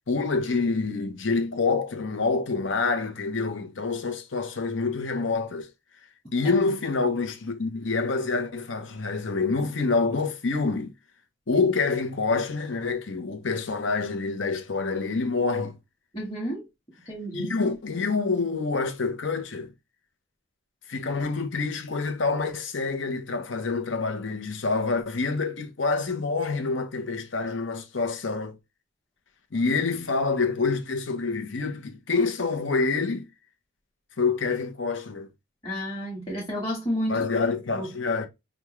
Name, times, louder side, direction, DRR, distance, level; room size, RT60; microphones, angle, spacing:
voice 1, 0.1-5.7 6.3-10.9 11.5-15.8 17.3-19.7 20.9-28.6 29.5-33.3 34.2-35.3 37.1-38.3, left 4 dB, 75° left, 0.9 m, -27 dB
voice 2, 16.1-16.6 17.0-17.5 35.6-37.3 37.7-37.9, equal, 20° left, 1.3 m, -31 dB
5.2 x 2.3 x 3.1 m
head